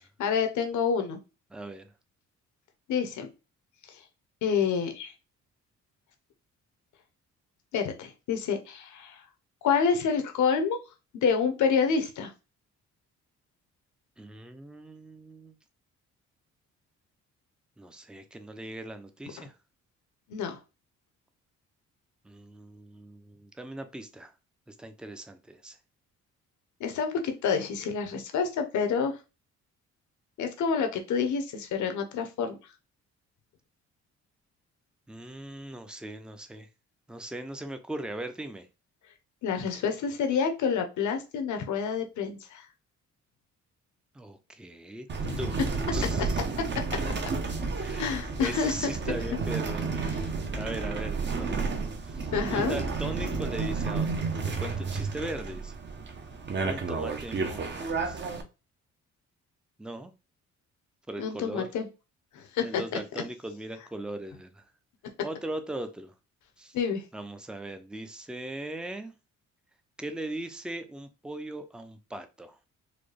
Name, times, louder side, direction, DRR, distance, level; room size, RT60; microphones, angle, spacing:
voice 1, 0.2-1.2 2.9-3.3 4.4-5.1 7.7-9.2 9.6-10.8 11.1-12.3 19.4-19.5 20.3-20.6 26.8-29.2 30.4-32.6 39.4-42.6 45.2-45.4 48.0-48.7 52.3-52.8 61.2-61.9 62.3-62.8 66.7-67.0, left 6 dB, 75° left, 0.9 m, -28 dB
voice 2, 1.5-1.9 14.2-15.6 17.8-19.5 22.2-24.3 24.7-25.8 35.1-36.7 37.1-38.7 44.1-45.1 45.4-45.6 45.9-46.4 47.8-55.7 56.6-58.2 59.8-60.1 61.1-61.7 62.6-64.6 65.2-66.1 66.6-66.8 67.1-69.1 70.0-72.6, right 1 dB, 5° right, 0.5 m, -39 dB
sound 1, 45.1-58.4, right 4 dB, 35° right, 0.8 m, -31 dB
4.1 x 2.3 x 3.3 m
cardioid pair, 90°, 30 cm